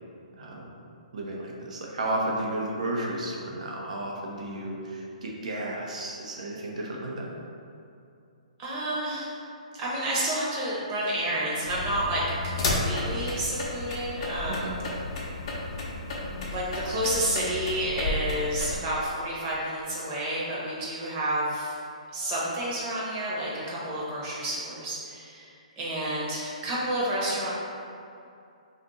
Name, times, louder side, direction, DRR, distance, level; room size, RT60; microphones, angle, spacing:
voice 1, 1.1-7.3 14.5-14.7, right 1 dB, 65° right, -2 dB, 0.7 m, -33 dB
voice 2, 8.6-9.4 9.7-14.7 16.4-21.8 22.1-25.5 25.8-27.5, right 1 dB, 30° right, -7 dB, 1.0 m, -30 dB
sound 1, 11.7-18.8, left 2 dB, 45° left, 0.7 m, -32 dB
2.5 x 2.5 x 4.0 m, 2.5 s
hypercardioid pair, 130°, 4 cm